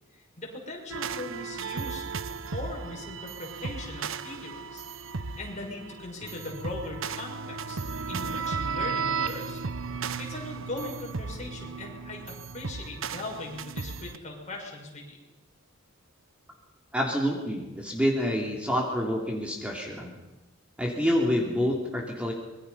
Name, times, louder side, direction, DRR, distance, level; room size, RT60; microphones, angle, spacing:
voice 1, 0.1-2.1 2.5-4.8 5.4-7.8 8.1-9.6 10.2-15.2, left 2 dB, 35° left, -1 dB, 6.2 m, -39 dB
sound 1, 0.9-14.2, right 5 dB, 65° right, 0.8 m, -35 dB
voice 2, 16.9-20.1 20.8-22.3, equal, 5° right, -1 dB, 3.0 m, -27 dB
26.0 x 22.5 x 5.7 m, 1.1 s
head